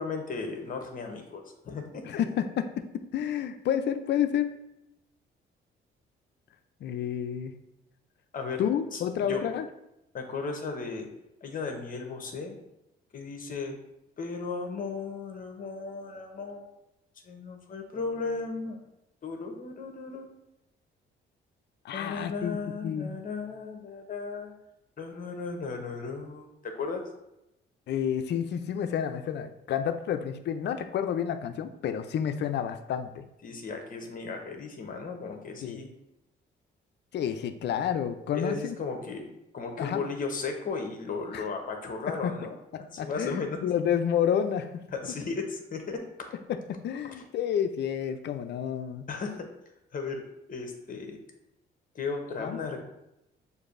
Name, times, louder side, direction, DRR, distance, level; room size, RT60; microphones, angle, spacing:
voice 1, 0.0-2.0 8.3-8.6 8.9-9.0 9.3-9.5 10.1-11.1 11.4-12.6 13.1-13.8 14.2-16.7 17.2-18.8 19.2-20.3 21.9-24.5 25.0-27.0 33.4-35.9 38.3-39.3 39.5-42.5 42.9-43.6 44.9-46.1 47.0-47.1 49.1-49.5 49.9-51.2 51.9-52.8, left 4 dB, 45° left, 4 dB, 0.9 m, -35 dB
voice 2, 2.0-4.5 6.8-7.6 8.6-9.7 21.8-23.2 27.9-33.3 35.6-35.8 37.1-38.8 39.8-40.1 41.3-41.4 42.1-42.3 42.7-44.9 46.5-49.1 52.4-52.7, left 9 dB, 60° left, 9 dB, 0.4 m, -30 dB
6.5 x 2.6 x 2.5 m, 0.89 s
cardioid pair, 90°, 20 cm